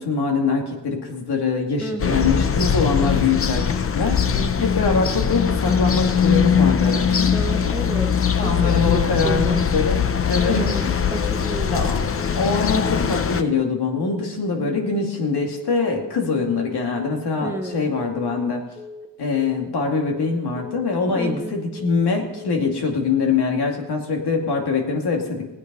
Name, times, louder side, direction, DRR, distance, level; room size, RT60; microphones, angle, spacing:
voice 1, 0.0-7.4 8.4-11.0 11.7-12.0 12.3-18.6 19.2-25.5, left 4 dB, 65° left, 2 dB, 2.6 m, -23 dB
voice 2, 1.8-2.3 4.3-4.7 7.3-9.7 10.3-10.8 11.1-11.8 17.4-17.9 21.1-21.5, right 1 dB, 5° right, 6 dB, 0.8 m, -31 dB
sound 1, 2.0-13.4, left 7 dB, 30° left, 0.7 m, -21 dB
Telephone, 11.6-11.9 12.2-12.5 12.8-13.1 13.4-13.7 14.0-14.3 14.6-14.9 15.2-15.5 15.8-16.1 16.4-16.7 17.0-17.3 17.6-17.9 18.2-18.5 18.8-19.1 19.4-19.7 20.0-20.3 20.6-20.9 21.2-21.5 21.8-22.1 22.4-22.7, left 4 dB, 10° left, 2.2 m, -39 dB
19.5 x 8.6 x 5.5 m, 1.0 s
cardioid pair, 125°, 43 cm